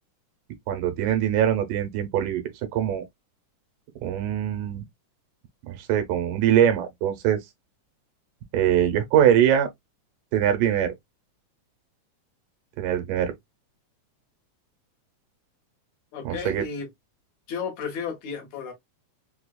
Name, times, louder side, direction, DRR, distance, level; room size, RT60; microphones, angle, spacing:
voice 1, 0.7-2.4 2.7-3.0 4.0-4.8 5.7-7.4 8.5-9.7 10.3-10.9 12.8-13.3 16.3-16.6, right 10 dB, 80° right, 2.4 m, -22 dB
voice 2, 16.1-16.9 17.5-18.7, left 6 dB, 65° left, 2.2 m, -33 dB
5.5 x 2.3 x 2.2 m
omnidirectional pair, 3.7 m